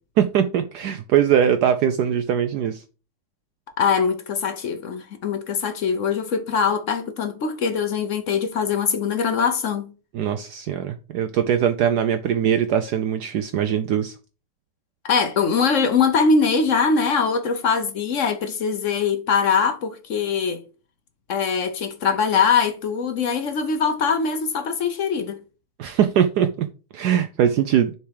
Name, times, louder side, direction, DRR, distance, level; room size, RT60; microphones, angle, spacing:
voice 1, 0.2-2.8 10.1-14.1 25.8-26.7 26.9-27.9, right 9 dB, 80° right, 0.9 m, -21 dB
voice 2, 3.8-9.9 15.0-20.6 21.3-25.4, left 5 dB, 55° left, 0.9 m, -22 dB
6.8 x 4.4 x 4.8 m
omnidirectional pair, 2.3 m